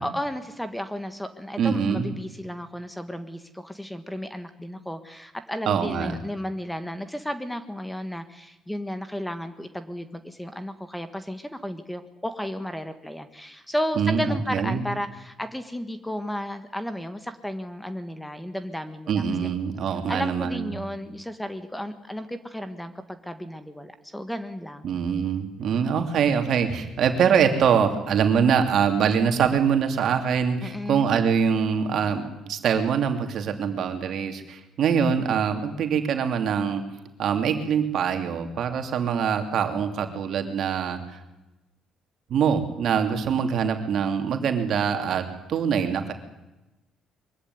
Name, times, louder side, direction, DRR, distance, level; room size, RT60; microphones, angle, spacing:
voice 1, 0.0-19.5 20.1-24.9 30.6-31.2, equal, 5° left, 10 dB, 1.6 m, -33 dB
voice 2, 1.6-2.1 5.6-6.2 14.0-14.8 19.1-20.7 24.8-36.8 37.2-41.2 42.3-46.1, right 7 dB, 60° right, 6 dB, 2.8 m, -24 dB
23.0 x 15.0 x 9.7 m, 1.0 s
cardioid pair, 110°, 0 cm